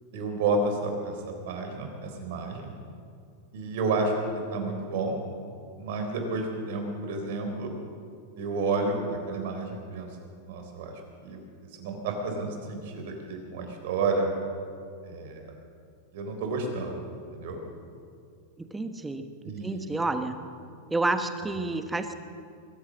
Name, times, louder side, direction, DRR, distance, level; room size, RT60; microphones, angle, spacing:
voice 1, 0.1-2.7 3.5-5.2 5.8-7.7 8.4-10.1 10.5-11.4 11.8-14.3 15.0-15.5 16.1-17.0 17.3-17.6 19.4-19.9, right 3 dB, 65° right, 4 dB, 3.7 m, -31 dB
voice 2, 18.6-20.3 20.9-22.1, right 2 dB, 10° right, 8 dB, 1.3 m, -30 dB
22.0 x 8.8 x 7.5 m, 2.3 s
hypercardioid pair, 115°, 0 cm